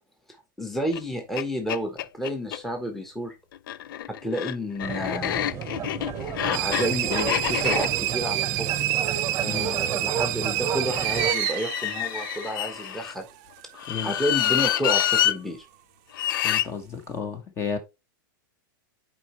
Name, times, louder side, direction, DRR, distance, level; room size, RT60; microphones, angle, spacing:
voice 1, 0.6-3.4 4.2-5.6 6.5-8.7 9.3-13.2 14.0-15.7, equal, ahead, 1.1 m, -30 dB
sound 1, 0.9-1.0 1.4-1.5 1.7-2.6 3.5-9.7 10.9-13.1 13.8-15.4 16.1-16.7, left 12 dB, 75° left, 0.5 m, -28 dB
sound 2, 4.8-11.3, right 8 dB, 25° right, 0.9 m, -32 dB
sound 3, 6.5-12.9, right 16 dB, 50° right, 0.6 m, -28 dB
voice 2, 9.4-9.8 13.9-14.1 16.4-17.8, left 6 dB, 25° left, 1.2 m, -32 dB
10.0 x 4.6 x 3.1 m
supercardioid pair, 140°, 11 cm